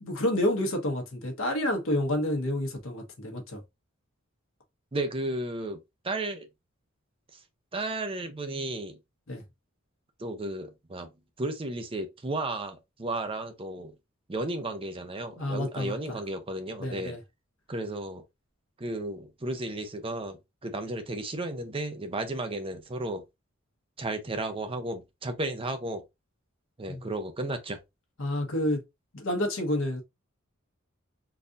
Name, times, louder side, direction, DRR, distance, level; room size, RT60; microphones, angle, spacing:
voice 1, 0.0-3.6 9.3-9.4 15.4-16.2 16.8-17.2 26.9-27.0 28.2-28.8 29.1-30.0, left 1 dB, 70° left, 1.1 m, -29 dB
voice 2, 4.9-5.8 6.0-6.5 7.7-9.0 10.2-11.1 11.4-13.9 14.3-17.2 17.7-18.2 18.8-23.2 24.0-26.0 26.8-27.8, right 2 dB, 25° right, 0.6 m, -33 dB
4.0 x 2.5 x 2.6 m
head